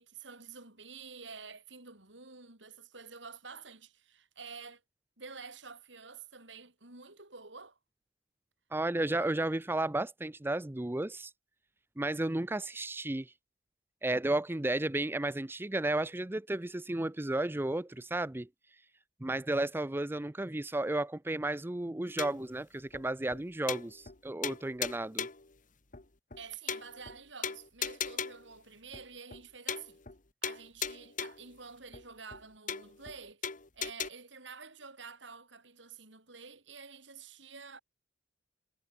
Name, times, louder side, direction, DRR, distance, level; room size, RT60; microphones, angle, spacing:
voice 1, 0.0-4.8 5.2-7.8 9.0-9.4 26.4-30.0 30.4-33.4 33.7-37.8, right 5 dB, 75° right, 6.6 m, -49 dB
voice 2, 8.7-11.3 12.0-13.3 14.0-18.5 19.2-25.3, right 2 dB, 10° right, 0.5 m, -33 dB
sound 1, 22.2-22.5 22.9-23.0 23.3-23.4 23.7-24.2 24.4-25.5 25.9-26.0 26.3-26.4 26.7-27.2 27.4-28.5 28.9-29.0 29.3-29.4 29.7-30.2 30.4-31.5 31.9-32.0 32.3-32.4 32.7-33.2 33.4-34.1, left 7 dB, 45° left, 2.0 m, -38 dB
head